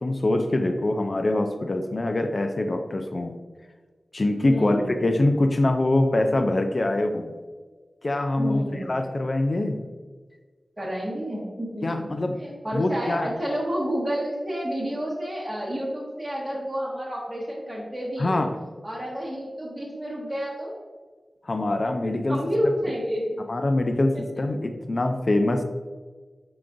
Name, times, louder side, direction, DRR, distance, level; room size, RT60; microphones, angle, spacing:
voice 1, 0.0-3.4 4.1-7.4 8.0-9.8 11.8-12.5 12.7-13.3 18.2-18.6 21.5-22.4 23.5-25.6, left 2 dB, 55° left, 6 dB, 0.4 m, -24 dB
voice 2, 4.4-5.1 8.4-9.0 10.8-12.0 12.4-18.4 18.8-20.7 22.3-23.2 24.1-24.4, equal, 20° right, -6 dB, 1.0 m, -30 dB
5.6 x 3.8 x 2.5 m, 1.4 s
wide cardioid pair, 50°, 0 cm